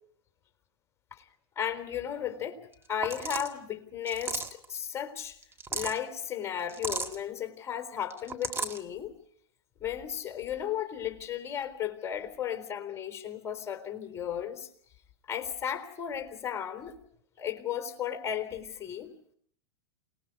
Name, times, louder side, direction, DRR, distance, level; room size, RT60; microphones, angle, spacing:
voice 1, 1.6-2.6 2.9-5.4 5.7-9.1 9.8-14.7 15.3-17.0 17.4-19.1, left 9 dB, 20° left, 3.9 m, -35 dB
sound 1, 2.7-2.8 3.0-3.5 4.1-4.6 5.4-6.0 6.7-7.2 8.1-8.8, right 4 dB, 15° right, 1.8 m, -34 dB
28.5 x 19.5 x 5.4 m
hypercardioid pair, 100°, 14 cm